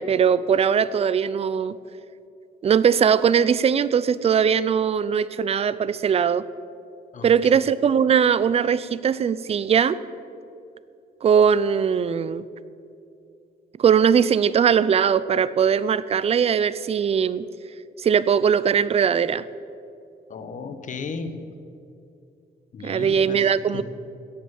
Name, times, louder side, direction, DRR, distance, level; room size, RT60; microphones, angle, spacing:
voice 1, 0.0-1.8 2.6-6.4 7.2-10.0 11.2-12.4 13.8-17.5 18.0-19.4 22.8-23.8, right 7 dB, 40° right, 17 dB, 0.5 m, -20 dB
voice 2, 20.3-21.5 22.7-23.8, left 4 dB, 50° left, 8 dB, 1.3 m, -35 dB
17.0 x 7.5 x 7.2 m, 2.6 s
cardioid pair, 120°, 17 cm